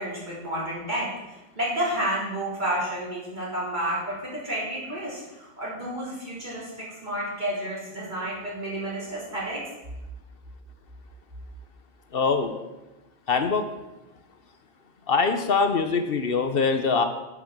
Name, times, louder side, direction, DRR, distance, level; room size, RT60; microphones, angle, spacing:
voice 1, 0.0-9.6, right 1 dB, 50° right, -6 dB, 3.8 m, -31 dB
voice 2, 12.1-12.6 13.3-13.7 15.1-17.0, left 4 dB, 65° left, 7 dB, 1.0 m, -23 dB
8.7 x 6.3 x 7.2 m, 1.0 s
omnidirectional pair, 1.0 m